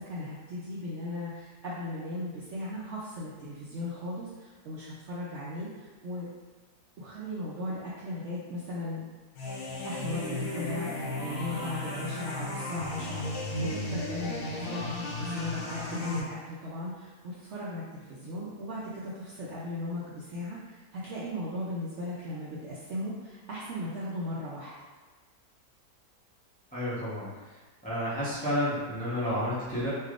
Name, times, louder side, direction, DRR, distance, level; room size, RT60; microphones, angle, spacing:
voice 1, 0.0-6.3 7.0-9.1 9.8-24.7, left 1 dB, 70° right, -8 dB, 0.7 m, -37 dB
sound 1, 9.4-16.2, left 2 dB, 75° left, 1.2 m, -35 dB
voice 2, 26.7-27.3 27.8-29.9, equal, 10° left, -10 dB, 0.4 m, -30 dB
3.2 x 2.8 x 2.4 m, 1.3 s
omnidirectional pair, 1.7 m